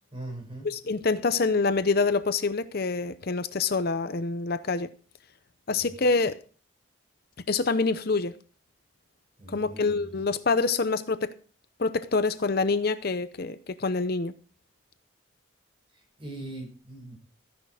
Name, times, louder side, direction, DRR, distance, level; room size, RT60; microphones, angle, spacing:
voice 1, 0.1-0.7 5.7-5.8 9.4-10.2 16.2-17.2, right 2 dB, 25° right, 6.2 m, -40 dB
voice 2, 0.6-4.9 5.7-6.4 7.5-8.3 9.5-11.3 11.8-14.3, left 4 dB, 50° left, 0.6 m, -26 dB
14.0 x 10.5 x 4.9 m
head